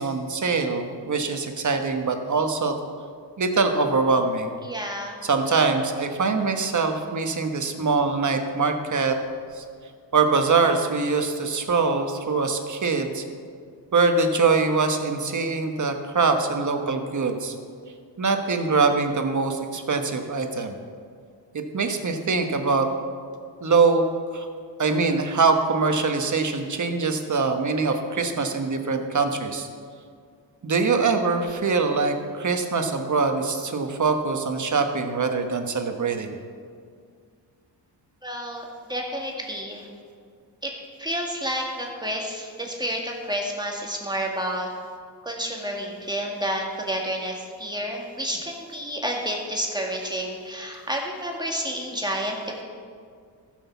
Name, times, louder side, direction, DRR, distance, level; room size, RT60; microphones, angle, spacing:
voice 1, 0.0-2.7 3.4-4.5 5.2-9.2 9.6-9.7 10.1-13.2 13.9-17.5 18.2-20.7 21.5-22.9 23.6-24.0 24.3-24.5 24.8-29.7 30.6-36.4, right 4 dB, 40° right, 5 dB, 1.3 m, -23 dB
voice 2, 4.6-5.2 38.2-39.9 40.6-40.7 41.0-44.7 45.2-52.6, equal, 10° right, -1 dB, 2.0 m, -30 dB
14.0 x 6.4 x 7.1 m, 2.1 s
cardioid pair, 95°, 45 cm